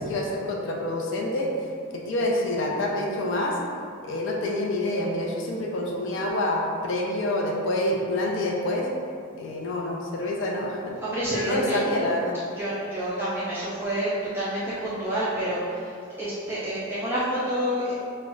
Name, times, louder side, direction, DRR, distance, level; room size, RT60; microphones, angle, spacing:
voice 1, 0.0-1.5 1.9-3.6 4.0-8.9 9.3-11.0 11.3-12.4, left 1 dB, 60° left, -1 dB, 0.4 m, -27 dB
voice 2, 11.0-11.8 12.6-18.0, right 1 dB, 10° right, -11 dB, 0.3 m, -28 dB
2.3 x 2.1 x 3.7 m, 2.3 s
head